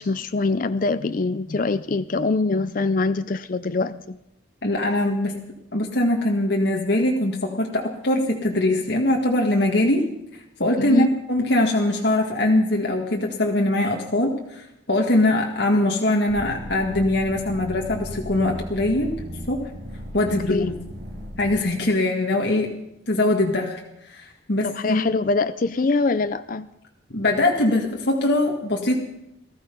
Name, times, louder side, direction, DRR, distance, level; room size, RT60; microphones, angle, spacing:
voice 1, 0.0-4.2 10.8-11.1 20.5-20.7 24.6-26.7, left 3 dB, 45° left, 11 dB, 0.5 m, -24 dB
voice 2, 4.6-5.5 5.7-10.1 10.6-19.1 19.5-19.7 20.1-20.7 21.4-22.7 23.1-23.8 24.1-25.0 27.1-29.0, left 1 dB, 60° left, 0 dB, 1.8 m, -22 dB
sound 1, 16.3-21.6, equal, 60° right, 4.7 m, -36 dB
19.0 x 13.5 x 5.4 m, 0.84 s
head